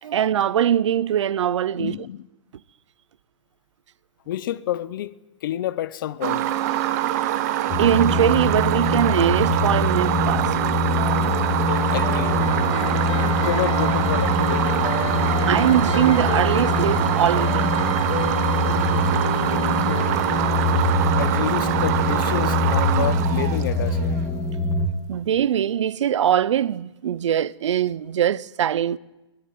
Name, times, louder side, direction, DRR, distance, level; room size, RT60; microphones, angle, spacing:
voice 1, 0.0-2.0 7.6-10.5 15.5-17.7 18.7-19.0 25.1-29.0, right 10 dB, 75° right, 0.8 m, -22 dB
voice 2, 1.8-2.3 4.3-6.5 11.9-12.4 13.1-14.8 21.2-24.2, left 12 dB, 45° left, 0.8 m, -29 dB
sound 1, 6.2-24.2, right 12 dB, 35° right, 1.2 m, -24 dB
sound 2, 7.7-24.9, left 2 dB, 15° left, 2.3 m, -24 dB
sound 3, 10.9-22.2, left 10 dB, 85° left, 1.3 m, -34 dB
22.5 x 21.0 x 9.5 m
hypercardioid pair, 170°, 15 cm